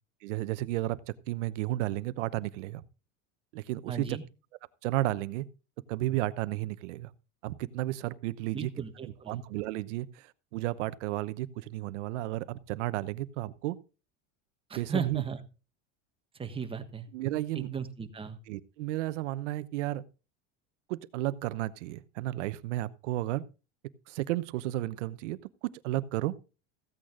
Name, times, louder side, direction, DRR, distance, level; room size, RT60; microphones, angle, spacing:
voice 1, 0.2-2.8 3.5-4.2 4.8-5.4 5.9-7.1 7.4-8.7 9.0-13.8 14.8-15.2 17.1-17.7 18.5-20.0 20.9-23.4 24.1-25.4 25.8-26.3, right 16 dB, 75° right, 16 dB, 0.9 m, -33 dB
voice 2, 3.9-4.2 8.5-9.4 14.7-15.4 16.4-17.1 17.5-18.4, right 6 dB, 15° right, 7 dB, 1.4 m, -36 dB
15.5 x 8.7 x 3.8 m, 0.32 s
supercardioid pair, 135°, 36 cm